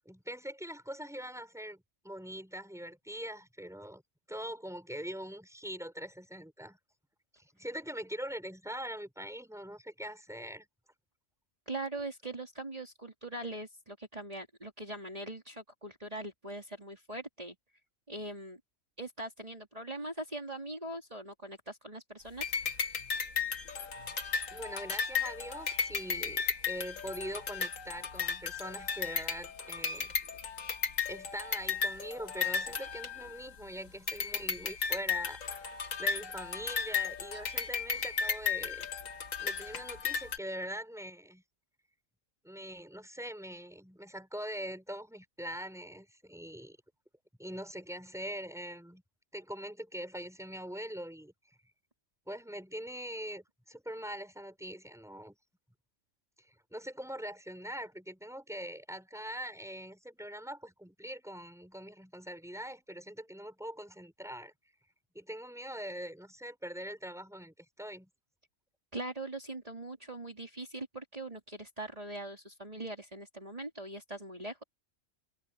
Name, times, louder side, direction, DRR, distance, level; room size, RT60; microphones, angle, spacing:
voice 1, 0.1-4.0 4.3-6.8 7.3-10.7 24.5-30.2 31.1-38.9 39.4-41.4 42.4-46.8 47.4-49.0 49.3-51.3 52.3-55.4 56.4-64.5 65.1-68.1, equal, ahead, 5.6 m, -43 dB
voice 2, 11.7-17.6 18.1-18.6 19.0-22.5 68.9-74.6, right 2 dB, 30° right, 3.7 m, -41 dB
sound 1, 22.4-33.6 34.1-40.4, left 6 dB, 90° left, 2.0 m, -35 dB
omnidirectional pair, 1.3 m